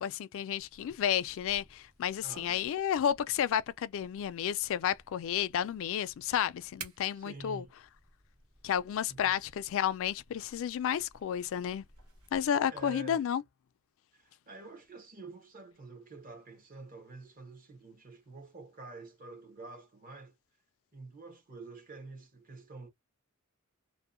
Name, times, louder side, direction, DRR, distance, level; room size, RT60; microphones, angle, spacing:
voice 1, 0.0-7.7 8.6-11.8 12.3-13.4, left 9 dB, 65° left, 0.3 m, -31 dB
sound 1, 0.6-12.5, right 5 dB, 85° right, 1.1 m, -56 dB
voice 2, 2.2-2.7 7.1-7.7 9.1-9.4 12.7-13.2 14.1-20.3 20.9-22.9, right 3 dB, 40° right, 0.8 m, -48 dB
2.6 x 2.1 x 2.4 m
head